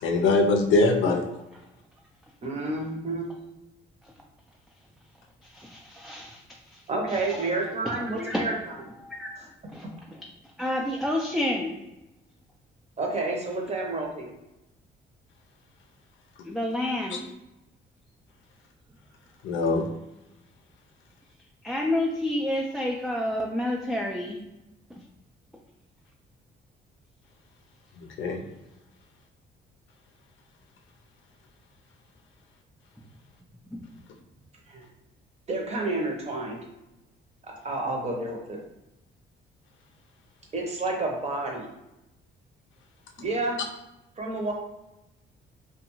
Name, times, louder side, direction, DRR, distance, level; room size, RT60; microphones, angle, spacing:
voice 1, 0.0-1.2 19.4-19.8 28.0-28.4, left 3 dB, 75° left, 2 dB, 0.5 m, -22 dB
voice 2, 2.4-3.3 6.9-8.5 9.8-9.9 13.0-14.3 34.7-34.8 35.5-36.6 37.4-38.6 40.5-41.7 43.2-43.6 44.2-44.5, right 2 dB, 35° right, 0 dB, 0.8 m, -30 dB
voice 3, 5.4-8.5 8.9-10.3 10.6-11.8 16.4-17.2 21.6-24.4 24.9-25.0 33.7-33.8, left 1 dB, ahead, -1 dB, 0.3 m, -30 dB
2.4 x 2.3 x 2.9 m, 0.93 s
cardioid pair, 90°, 20 cm